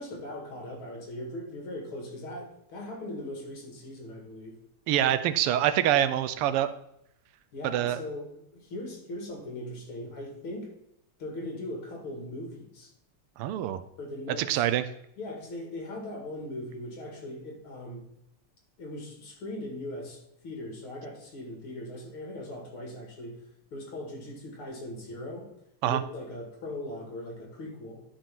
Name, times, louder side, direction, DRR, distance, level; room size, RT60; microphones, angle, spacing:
voice 1, 0.0-4.6 7.5-10.7 11.2-12.9 14.0-14.6 15.2-18.1 18.8-23.4 23.7-25.5 25.8-28.0, left 1 dB, 70° left, 1 dB, 2.7 m, -39 dB
voice 2, 4.9-6.7 7.6-8.0 13.4-13.8 14.3-14.8 25.8-26.0, right 11 dB, 90° right, 12 dB, 1.6 m, -25 dB
12.0 x 5.1 x 3.6 m, 0.78 s
omnidirectional pair, 2.4 m